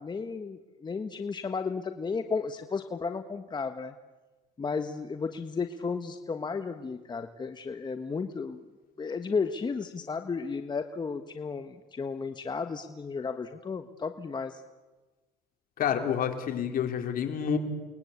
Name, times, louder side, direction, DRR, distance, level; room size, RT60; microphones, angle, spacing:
voice 1, 0.0-3.9 4.6-8.6 9.0-14.6, left 5 dB, 25° left, 8 dB, 1.3 m, -33 dB
voice 2, 15.8-17.6, left 8 dB, 60° left, 5 dB, 3.9 m, -28 dB
29.0 x 21.0 x 8.3 m, 1.2 s
cardioid pair, 110°, 17 cm